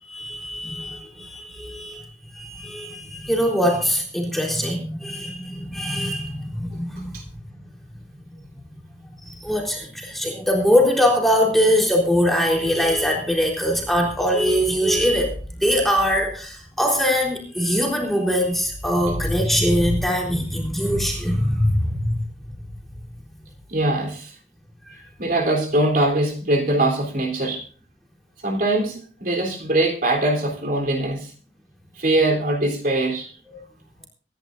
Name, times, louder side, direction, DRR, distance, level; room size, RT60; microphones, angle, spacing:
voice 1, 0.0-7.1 9.2-22.2 24.9-25.0, equal, ahead, -1 dB, 3.8 m, -22 dB
voice 2, 23.7-24.3 25.2-27.6 28.4-31.3 32.0-33.3, right 1 dB, 55° right, 3 dB, 3.5 m, -22 dB
25.5 x 10.5 x 2.6 m, 0.40 s
head